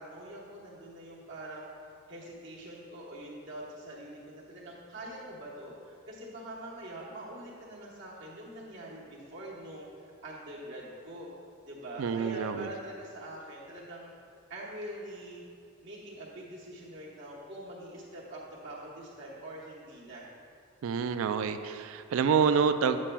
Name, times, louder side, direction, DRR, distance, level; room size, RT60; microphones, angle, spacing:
voice 1, 0.0-1.7 2.1-11.3 11.6-14.1 14.5-15.4 15.8-20.3, right 1 dB, 55° right, -5 dB, 1.1 m, -44 dB
voice 2, 12.0-12.7 20.8-23.0, right 6 dB, 75° right, 10 dB, 0.3 m, -27 dB
8.3 x 7.4 x 2.2 m, 2.4 s
head